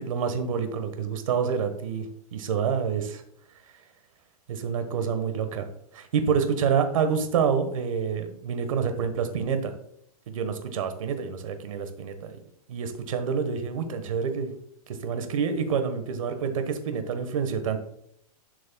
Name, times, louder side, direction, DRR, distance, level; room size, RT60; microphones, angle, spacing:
voice 1, 0.0-2.1 2.3-3.2 4.5-5.7 5.9-9.7 10.3-12.4 12.7-14.5 14.9-17.8, right 6 dB, 60° right, 8 dB, 1.2 m, -27 dB
11.0 x 6.3 x 2.3 m, 0.70 s
supercardioid pair, 175°, 20 cm